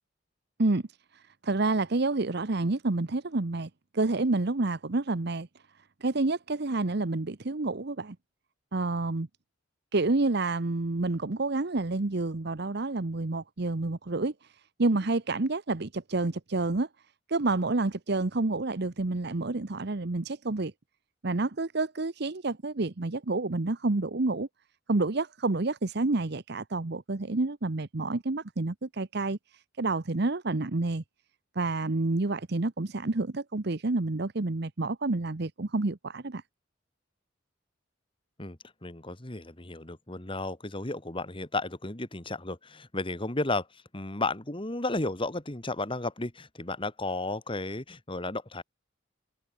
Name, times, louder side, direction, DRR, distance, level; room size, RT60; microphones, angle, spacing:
voice 1, 1.1-5.5 6.0-8.2 8.7-9.3 9.9-14.3 14.8-16.9 17.3-20.7 21.2-24.5 24.9-29.4 29.8-31.0 31.6-36.4, right 2 dB, 55° right, 0.9 m, -29 dB
voice 2, 38.4-48.6, left 2 dB, 25° left, 2.2 m, -33 dB
head